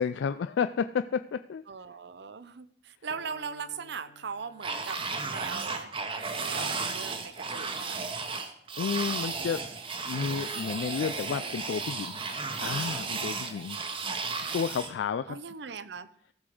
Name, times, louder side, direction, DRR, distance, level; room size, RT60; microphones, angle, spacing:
voice 1, 0.0-1.6 8.8-9.6 10.1-12.2 12.6-13.8 14.5-15.4, left 6 dB, 80° left, 11 dB, 0.3 m, -31 dB
voice 2, 1.7-5.9 6.2-8.0 15.3-16.1, right 6 dB, 70° right, 14 dB, 0.6 m, -40 dB
Piano, 3.1-11.0, left 2 dB, 40° left, 1.5 m, -57 dB
sound 1, 4.6-14.9, right 4 dB, 30° right, 1.0 m, -34 dB
14.5 x 6.1 x 4.9 m, 0.67 s
head